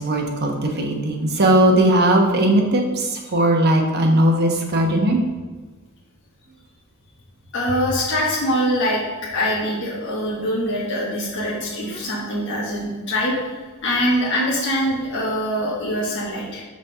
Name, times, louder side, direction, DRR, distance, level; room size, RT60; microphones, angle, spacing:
voice 1, 0.0-5.2, right 1 dB, 50° right, 1 dB, 1.0 m, -18 dB
voice 2, 7.5-16.6, equal, 60° left, -6 dB, 1.5 m, -23 dB
6.0 x 4.3 x 5.5 m, 1.3 s
head